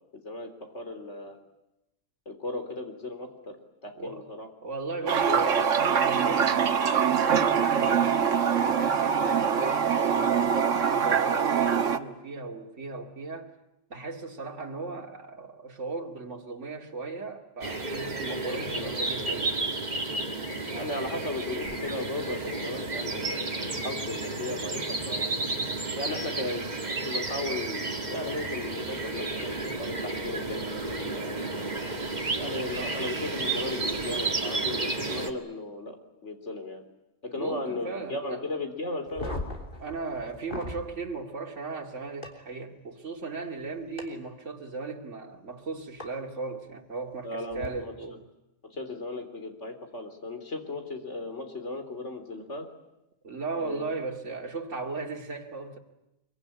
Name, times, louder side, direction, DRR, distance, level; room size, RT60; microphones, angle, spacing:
voice 1, 0.2-1.4 2.3-3.6 3.8-4.5 5.0-6.0 18.5-19.0 20.7-25.3 26.0-26.7 27.0-31.6 32.3-36.0 36.2-36.8 37.2-39.4 47.2-47.9 48.7-52.7 53.6-53.8, left 2 dB, 70° left, 3.9 m, -36 dB
voice 2, 4.0-4.3 4.6-13.5 13.9-19.5 37.3-38.4 39.8-48.3 53.2-55.8, right 3 dB, 75° right, 2.6 m, -37 dB
Toilet flush, 5.1-12.0, right 7 dB, 90° right, 1.6 m, -24 dB
sound 1, 17.6-35.3, right 3 dB, 35° right, 2.0 m, -32 dB
sound 2, 39.1-40.8 42.2-42.3 44.0-44.1 46.0-46.1 47.5-47.7, left 1 dB, 45° left, 3.5 m, -37 dB
24.5 x 23.5 x 10.0 m
omnidirectional pair, 1.3 m